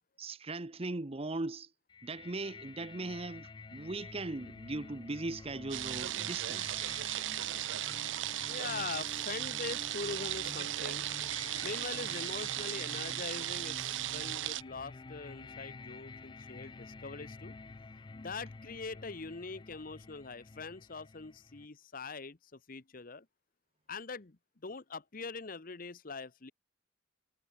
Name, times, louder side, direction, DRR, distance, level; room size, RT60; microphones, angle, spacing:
voice 1, 0.2-1.7 2.0-6.8, right 2 dB, 30° right, 0.9 m, -39 dB
sound 1, 1.9-21.7, left 3 dB, 25° left, 0.4 m, -49 dB
sound 2, 5.7-14.6, right 14 dB, 90° right, 0.5 m, -36 dB
voice 2, 8.5-11.1 11.6-17.5 18.1-23.3 23.9-26.5, left 4 dB, 50° left, 1.0 m, -43 dB
head